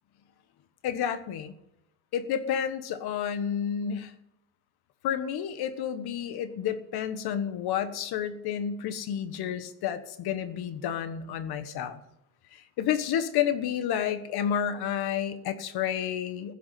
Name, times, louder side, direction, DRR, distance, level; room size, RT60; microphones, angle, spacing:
voice 1, 0.8-1.5 2.1-4.1 5.0-12.0 12.8-16.5, left 9 dB, 65° left, 11 dB, 1.5 m, -30 dB
15.5 x 7.2 x 9.2 m, 0.85 s
cardioid pair, 155°, 41 cm